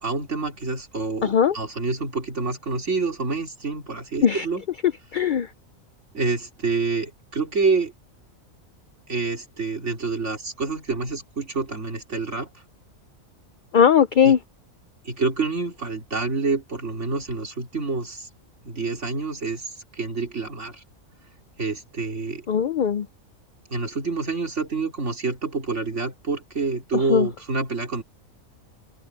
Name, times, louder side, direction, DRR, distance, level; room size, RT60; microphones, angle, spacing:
voice 1, 0.0-4.7 6.1-7.9 9.1-12.6 14.2-14.3 15.0-18.3 18.6-20.8 21.6-22.5 23.7-28.0, right 4 dB, 60° right, 3.7 m, -27 dB
voice 2, 1.2-1.5 4.2-4.4 5.1-5.5 13.7-14.4 22.5-23.0 27.1-27.3, left 7 dB, 70° left, 0.4 m, -18 dB
omnidirectional pair, 1.4 m